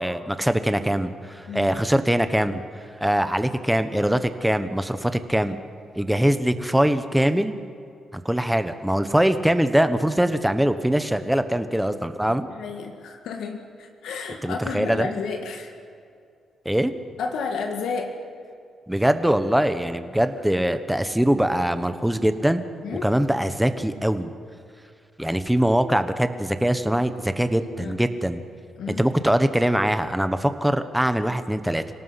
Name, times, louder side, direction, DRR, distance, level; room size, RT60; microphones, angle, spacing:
voice 1, 0.0-2.6 3.0-5.6 6.0-7.6 8.1-12.5 14.4-15.1 16.6-16.9 18.9-22.6 23.0-24.3 25.2-28.4 28.9-31.8, right 1 dB, 5° right, 10 dB, 1.1 m, -22 dB
voice 2, 12.6-15.7 17.2-18.1 22.8-23.1 27.8-28.0 28.8-29.1, left 5 dB, 85° left, 3 dB, 2.0 m, -31 dB
25.5 x 18.0 x 5.8 m, 2.4 s
cardioid pair, 120°, 0 cm